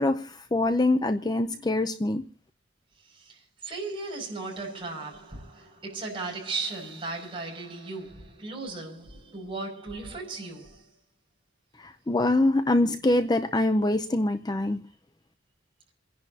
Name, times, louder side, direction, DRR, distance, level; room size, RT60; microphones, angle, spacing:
voice 1, 0.0-2.2 11.8-14.8, left 2 dB, 20° left, 0.6 m, -24 dB
voice 2, 3.0-10.9, right 3 dB, 25° right, 6.3 m, -36 dB
29.0 x 11.0 x 2.8 m
head